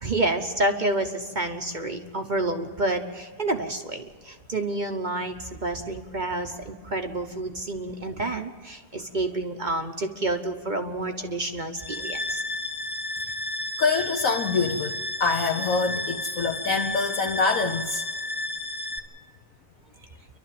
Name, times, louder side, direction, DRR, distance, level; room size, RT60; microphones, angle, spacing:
voice 1, 0.0-12.4, right 2 dB, 35° right, 5 dB, 0.9 m, -29 dB
sound 1, 11.8-19.0, left 2 dB, ahead, 1.2 m, -32 dB
voice 2, 13.8-18.0, left 4 dB, 60° left, 2 dB, 1.2 m, -25 dB
29.0 x 12.0 x 7.5 m, 1.4 s
omnidirectional pair, 1.7 m